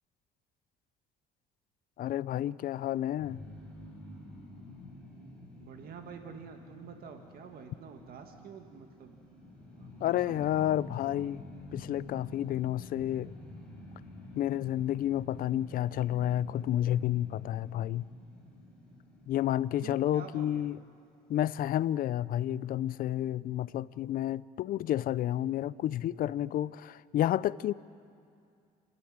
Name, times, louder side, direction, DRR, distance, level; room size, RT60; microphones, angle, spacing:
voice 1, 2.0-3.4 10.0-11.4 11.7-13.3 14.4-18.1 19.3-20.8 21.3-27.7, left 12 dB, 60° left, 19 dB, 0.5 m, -30 dB
sound 1, 3.2-20.4, left 1 dB, 5° left, 7.1 m, -49 dB
voice 2, 5.6-9.2 9.8-11.3 19.8-20.6, right 6 dB, 65° right, 4 dB, 1.9 m, -48 dB
29.0 x 12.0 x 8.9 m, 2.4 s
cardioid pair, 110°, 17 cm